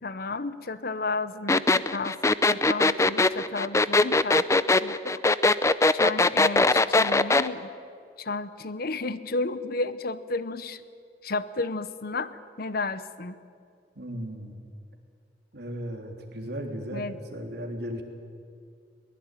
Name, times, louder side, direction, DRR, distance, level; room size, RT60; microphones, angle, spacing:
voice 1, 0.0-5.2 5.9-7.7 8.2-10.8 11.2-13.4 16.9-17.2, left 3 dB, 60° left, 14 dB, 0.9 m, -32 dB
sound 1, 1.5-7.5, left 2 dB, 15° left, 0.6 m, -20 dB
voice 2, 13.9-14.6 15.5-18.0, equal, 65° right, 2 dB, 3.4 m, -36 dB
22.5 x 20.0 x 9.2 m, 2.3 s
head